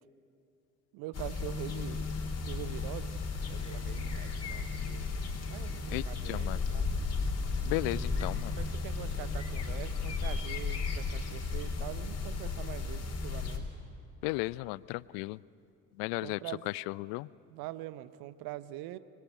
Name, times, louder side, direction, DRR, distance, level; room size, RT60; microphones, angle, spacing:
voice 1, 0.9-2.1 2.5-3.1 3.4-5.1 5.5-6.9 7.8-13.6 16.2-16.7 17.5-19.0, right 15 dB, 55° right, 16 dB, 1.0 m, -44 dB
sound 1, 1.1-13.6, left 4 dB, 35° left, 3.7 m, -34 dB
voice 2, 5.9-6.6 7.6-8.5 14.2-15.4 16.0-16.4 16.7-17.3, left 22 dB, 60° left, 23 dB, 0.6 m, -35 dB
24.5 x 22.5 x 9.2 m, 2.5 s
figure-of-eight pair, 55°, 43 cm